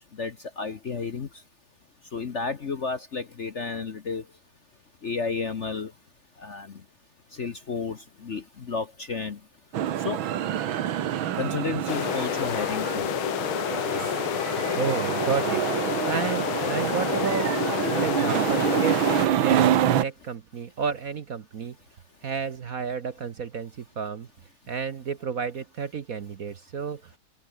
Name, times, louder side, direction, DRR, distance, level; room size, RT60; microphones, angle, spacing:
voice 1, 0.2-1.3 2.1-4.2 5.0-5.9 6.4-6.7 7.4-8.0 8.2-9.4 10.0-10.2 11.4-13.1, left 4 dB, 40° left, 1.2 m, -31 dB
sound 1, 9.7-20.0, right 10 dB, 75° right, 1.9 m, -27 dB
sound 2, 11.9-19.3, left 14 dB, 80° left, 1.6 m, -29 dB
voice 2, 14.7-15.7 16.0-17.6 17.9-19.1 19.4-21.8 22.2-24.3 24.7-27.0, right 6 dB, 50° right, 1.3 m, -31 dB
open air
omnidirectional pair, 2.3 m